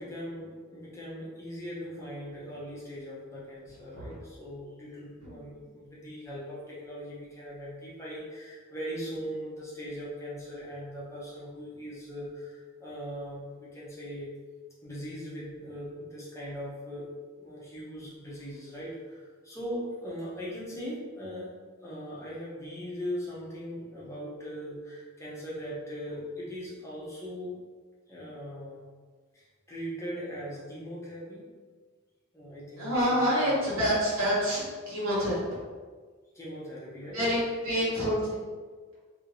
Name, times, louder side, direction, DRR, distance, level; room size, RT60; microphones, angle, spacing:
voice 1, 0.0-14.3 14.8-17.1 17.4-21.5 21.8-27.5 28.1-28.8 29.3-31.5 32.3-33.6 36.3-37.3 37.8-37.9, equal, 15° left, -7 dB, 0.7 m, -40 dB
voice 2, 5.3-5.6 32.8-35.4 37.1-38.2, equal, 80° right, -7 dB, 1.3 m, -27 dB
2.7 x 2.7 x 2.8 m, 1.5 s
head